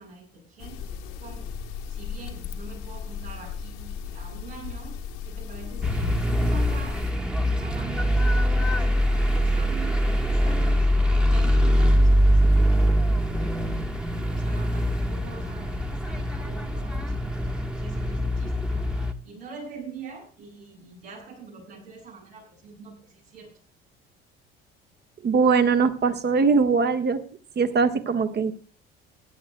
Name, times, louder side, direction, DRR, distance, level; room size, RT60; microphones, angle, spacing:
voice 1, 0.0-7.1 7.4-10.9 11.3-13.9 14.3-18.9 19.2-23.6, right 5 dB, 75° right, -4 dB, 6.6 m, -44 dB
sound 1, 0.6-7.1, left 6 dB, 60° left, 1.4 m, -35 dB
sound 2, 5.8-19.1, equal, 5° right, 1.3 m, -23 dB
voice 2, 25.2-27.2 27.6-28.5, right 5 dB, 35° right, 8 dB, 1.4 m, -21 dB
25.0 x 11.0 x 2.2 m, 0.38 s
figure-of-eight pair, 55°, 30 cm